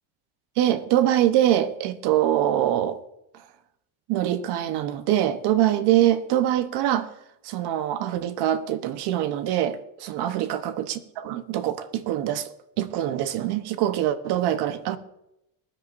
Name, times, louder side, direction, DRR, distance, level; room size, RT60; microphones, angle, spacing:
voice 1, 0.6-3.0 4.1-7.1 7.4-12.5 12.8-15.0, right 12 dB, 70° right, 1.0 m, -24 dB
21.0 x 10.0 x 2.6 m
cardioid pair, 150°, 42 cm